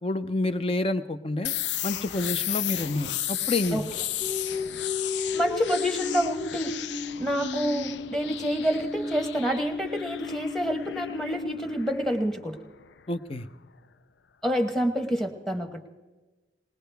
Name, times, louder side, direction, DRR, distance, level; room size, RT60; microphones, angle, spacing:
voice 1, 0.0-1.5 1.8-3.8 13.1-13.5, left 2 dB, 35° left, 10 dB, 0.7 m, -28 dB
sound 1, 1.4-13.1, left 12 dB, 85° left, 0.4 m, -35 dB
sound 2, 4.2-11.8, left 3 dB, 60° left, 2.4 m, -35 dB
voice 2, 5.3-6.7 7.2-12.6 14.4-15.9, equal, ahead, 6 dB, 1.2 m, -28 dB
20.5 x 19.5 x 3.5 m, 1.2 s
head